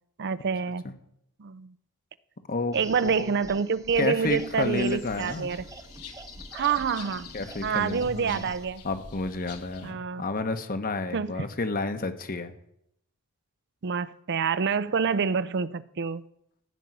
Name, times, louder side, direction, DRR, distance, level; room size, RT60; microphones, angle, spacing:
voice 1, 0.2-0.9 1.4-1.7 2.7-5.7 6.5-7.3 7.6-8.8 9.8-10.2 11.1-11.3 13.8-16.2, right 6 dB, 50° right, 0.5 m, -27 dB
sound 1, 2.7-8.7, right 2 dB, 15° right, 0.8 m, -46 dB
voice 2, 3.0-3.3 4.0-5.5 7.3-8.5 8.8-12.5, left 3 dB, 40° left, 1.1 m, -30 dB
sound 2, 4.4-9.9, left 5 dB, 90° left, 1.6 m, -46 dB
15.5 x 5.3 x 9.1 m
head